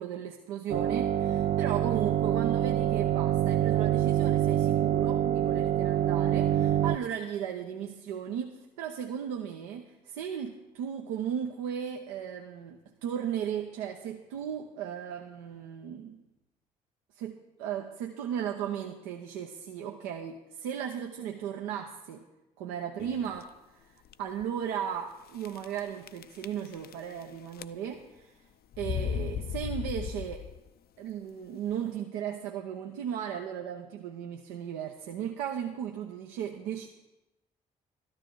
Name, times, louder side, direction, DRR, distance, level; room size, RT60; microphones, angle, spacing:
voice 1, 0.0-16.2 17.1-22.2 22.6-28.4 28.8-30.4 31.0-36.9, right 9 dB, 80° right, 3 dB, 0.9 m, -36 dB
sound 1, 0.7-7.0, right 11 dB, 50° right, 0.5 m, -26 dB
sound 2, 23.0-23.4 24.1-24.2 24.4-24.5 25.4-25.8 26.1-27.2 27.5-28.1 28.7-30.7, left 8 dB, 55° left, 0.6 m, -36 dB
13.0 x 12.5 x 4.7 m, 1.0 s
hypercardioid pair, 45°, 19 cm